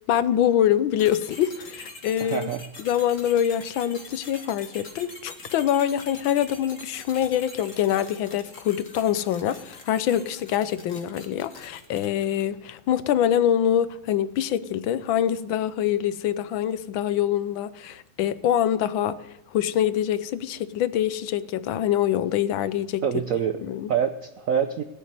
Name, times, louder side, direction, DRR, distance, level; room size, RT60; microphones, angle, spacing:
voice 1, 0.1-2.5 2.8-19.2 19.5-23.0 23.6-23.9, left 10 dB, 75° left, 1.4 m, -25 dB
sound 1, 1.0-12.6, left 3 dB, 40° left, 2.4 m, -44 dB
voice 2, 2.2-2.7 23.0-23.6 23.9-24.8, right 8 dB, 75° right, 0.7 m, -25 dB
18.0 x 7.4 x 9.6 m
omnidirectional pair, 2.3 m